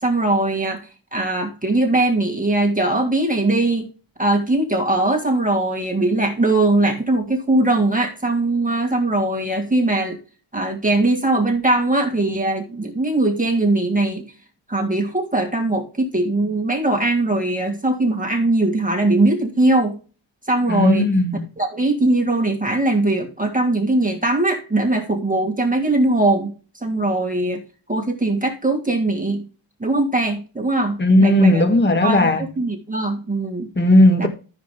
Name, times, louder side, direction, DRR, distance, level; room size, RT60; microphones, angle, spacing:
voice 1, 0.0-3.9 4.2-10.2 10.5-14.3 14.7-20.0 20.5-21.1 21.6-27.6 27.9-29.5 29.8-31.6 32.0-33.7 34.2-34.3, right 2 dB, 15° right, 1.9 m, -20 dB
voice 2, 20.7-21.4 31.0-32.4 33.8-34.3, left 1 dB, 20° left, 1.5 m, -15 dB
14.5 x 7.2 x 2.2 m
wide cardioid pair, 140°, 48 cm